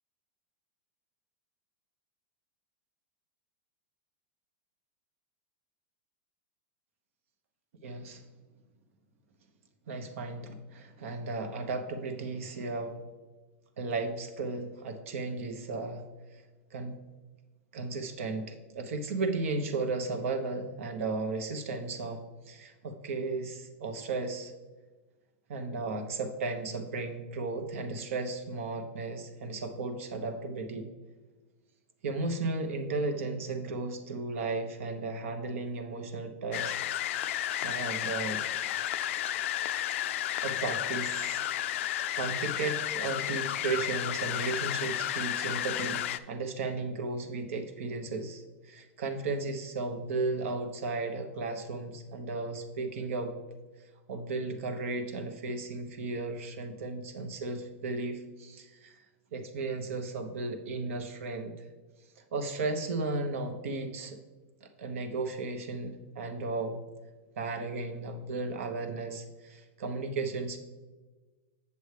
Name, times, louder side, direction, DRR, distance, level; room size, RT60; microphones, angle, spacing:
voice 1, 7.8-8.2 9.9-13.0 13.8-16.0 16.3-16.4 16.7-17.0 17.7-24.5 25.5-30.9 32.0-36.7 37.6-38.4 40.4-41.4 42.1-53.4 54.1-59.0 59.3-61.5 62.2-64.2 64.6-66.8 67.4-70.6, right 3 dB, 75° right, 6 dB, 1.1 m, -35 dB
sound 1, 36.5-46.2, left 12 dB, 65° left, 0.4 m, -32 dB
8.0 x 7.0 x 3.3 m, 1.3 s
supercardioid pair, 145°, 7 cm